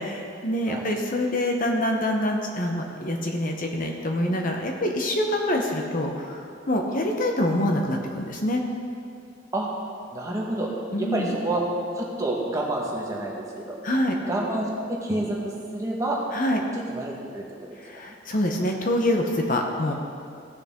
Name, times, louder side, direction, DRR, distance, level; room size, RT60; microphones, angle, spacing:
voice 1, 0.0-6.4 6.7-8.6 10.9-11.3 13.8-14.1 16.3-16.6 17.8-19.9, left 1 dB, 45° left, 2 dB, 0.9 m, -25 dB
voice 2, 10.1-10.7 11.0-11.6 12.0-13.8 14.3-16.2 16.9-17.4 18.1-18.2, right 1 dB, 15° right, -3 dB, 1.4 m, -28 dB
16.0 x 6.5 x 3.6 m, 2.4 s
head